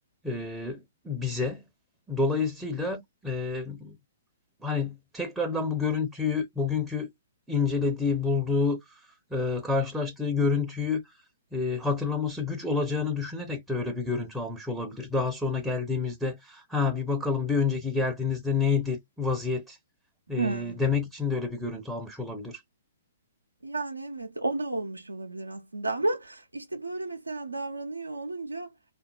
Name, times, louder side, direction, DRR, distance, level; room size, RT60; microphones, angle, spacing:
voice 1, 0.2-1.6 2.1-4.0 4.6-7.1 7.5-11.2 11.5-19.8 20.3-22.6, left 4 dB, 5° right, 0.5 m, -29 dB
voice 2, 20.4-20.8 23.6-28.7, right 2 dB, 85° right, 0.5 m, -32 dB
3.4 x 2.3 x 2.2 m
figure-of-eight pair, 120°, 0 cm